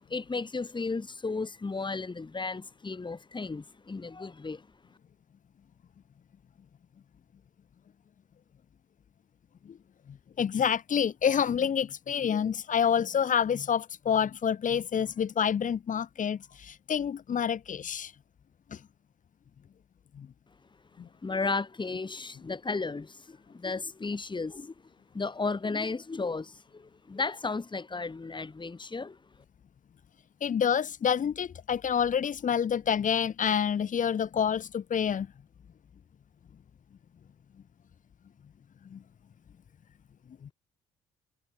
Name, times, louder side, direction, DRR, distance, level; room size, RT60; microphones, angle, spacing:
voice 1, 0.1-4.6 21.2-24.7 25.1-29.2, left 3 dB, 25° left, 5.4 m, -34 dB
voice 2, 10.1-18.1 18.7-18.8 20.2-20.3 21.0-21.1 30.4-35.3 38.9-39.0 40.4-40.5, left 8 dB, 50° left, 2.6 m, -28 dB
hypercardioid pair, 50°, 17 cm